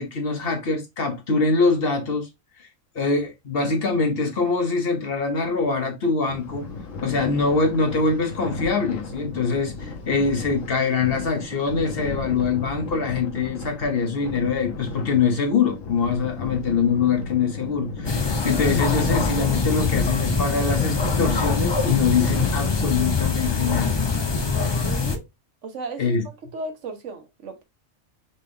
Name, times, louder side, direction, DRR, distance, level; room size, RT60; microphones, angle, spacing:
voice 1, 0.0-2.3 2.6-2.7 2.9-6.6 7.0-23.9 26.0-26.2, left 4 dB, 50° left, 1.0 m, -24 dB
sound 1, 6.3-22.7, left 3 dB, 75° left, 1.4 m, -35 dB
sound 2, 18.1-25.2, left 4 dB, 35° left, 0.4 m, -23 dB
voice 2, 24.5-25.3 25.6-27.6, right 3 dB, 65° right, 1.2 m, -36 dB
4.2 x 3.4 x 3.2 m
omnidirectional pair, 1.4 m